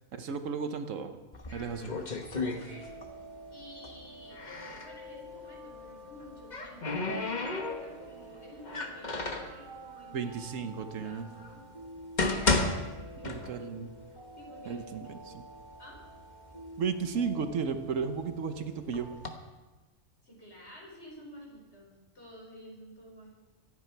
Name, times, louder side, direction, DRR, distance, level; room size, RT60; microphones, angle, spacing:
voice 1, 0.1-1.2 1.5-1.9 10.1-11.3 13.2-13.9 14.7-15.4 16.8-19.1, right 6 dB, 70° right, 8 dB, 1.3 m, -34 dB
sound 1, 1.3-3.2 3.5-4.9 6.0-8.1 8.6-9.6 10.4-10.5 11.1-11.2 11.8-13.8 14.2-14.3 15.0-15.1 15.4-16.1 16.6-18.3 18.9-19.3, left 3 dB, 35° left, 1.3 m, -33 dB
voice 2, 1.5-2.0 2.4-3.0 3.5-10.5 11.0-11.6 12.3-13.8 14.4-15.4 15.8-16.0 20.2-23.3, left 1 dB, 50° left, -2 dB, 5.1 m, -51 dB
sound 2, 2.7-19.3, right 1 dB, 15° left, 6.6 m, -49 dB
25.5 x 9.6 x 4.5 m, 1.2 s
omnidirectional pair, 1.4 m